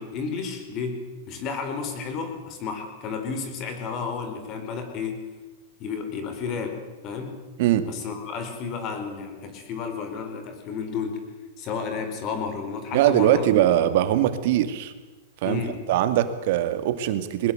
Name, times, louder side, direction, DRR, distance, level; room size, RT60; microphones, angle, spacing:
voice 1, 0.0-5.2 5.8-7.4 7.8-11.2 11.6-13.4 15.4-15.8, left 5 dB, 40° left, 7 dB, 4.7 m, -32 dB
voice 2, 12.9-14.9 15.4-15.6 15.9-17.5, right 12 dB, 60° right, 10 dB, 2.3 m, -21 dB
22.0 x 20.0 x 7.9 m, 1.2 s
hypercardioid pair, 130°, 0 cm